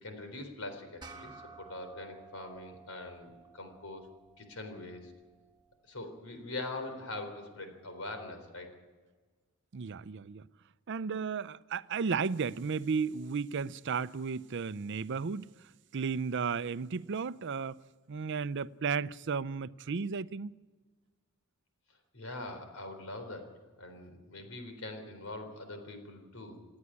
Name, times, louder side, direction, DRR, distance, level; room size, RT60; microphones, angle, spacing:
voice 1, 0.0-4.1 4.4-5.1 5.8-8.7 22.1-23.5 23.8-26.6, left 2 dB, 85° left, 3.9 m, -43 dB
sound 1, 1.0-5.8, right 4 dB, 20° right, 1.7 m, -54 dB
voice 2, 9.7-10.5 10.9-15.5 15.9-17.8 18.1-20.5, right 5 dB, 60° right, 0.5 m, -34 dB
28.0 x 9.8 x 9.8 m
head